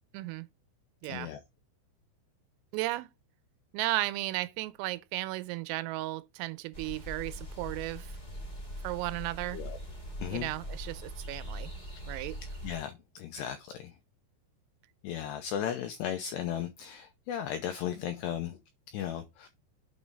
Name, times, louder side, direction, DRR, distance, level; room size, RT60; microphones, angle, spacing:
voice 1, 0.1-0.5 1.0-1.3 2.7-3.1 3.7-8.1 8.8-9.6 10.3-11.7 12.1-12.4, right 18 dB, 90° right, 3.4 m, -34 dB
voice 2, 1.1-1.4 9.5-9.8 10.2-10.5 12.6-14.0 15.0-18.6 18.9-19.5, left 10 dB, 90° left, 2.4 m, -36 dB
sound 1, 6.7-12.8, equal, 35° left, 0.6 m, -41 dB
8.5 x 5.1 x 3.5 m
omnidirectional pair, 5.8 m